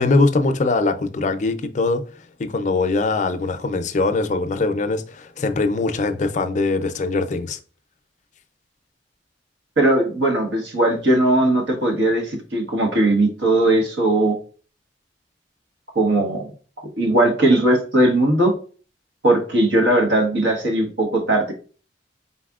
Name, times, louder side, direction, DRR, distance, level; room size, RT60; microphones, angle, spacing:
voice 1, 0.0-2.0 2.4-7.6, left 3 dB, 45° left, 0.5 m, -21 dB
voice 2, 9.8-14.3 15.9-16.5 17.0-18.5 19.2-21.5, right 1 dB, 90° right, 1.2 m, -18 dB
4.1 x 4.1 x 2.4 m
head